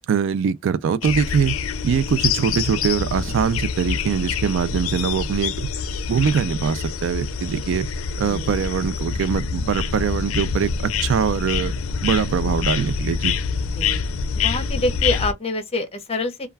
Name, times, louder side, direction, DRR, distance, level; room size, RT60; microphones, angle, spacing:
voice 1, 0.1-1.6 1.8-5.7 6.1-7.9 8.2-11.7 12.0-13.3, right 7 dB, 60° right, 0.3 m, -22 dB
sound 1, 1.0-15.3, left 6 dB, 70° left, 0.4 m, -26 dB
voice 2, 8.2-8.5 13.8-14.0 14.4-16.5, left 2 dB, 30° left, 0.7 m, -26 dB
2.3 x 2.2 x 3.2 m
head